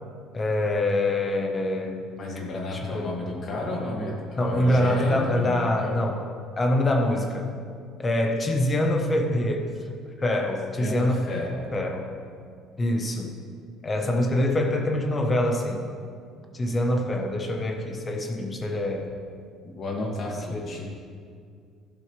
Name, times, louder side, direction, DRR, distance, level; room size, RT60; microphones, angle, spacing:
voice 1, 0.3-2.1 2.7-3.2 4.4-6.2 6.6-7.5 8.0-9.7 10.2-11.2 11.7-12.1 12.8-13.3 13.8-15.8 16.5-19.1 20.5-20.8, left 1 dB, 15° left, 2 dB, 1.1 m, -25 dB
voice 2, 2.2-6.0 10.7-11.7 19.6-20.8, left 2 dB, 35° left, -2 dB, 2.2 m, -32 dB
14.5 x 12.0 x 3.3 m, 2.2 s
cardioid pair, 180°, 0 cm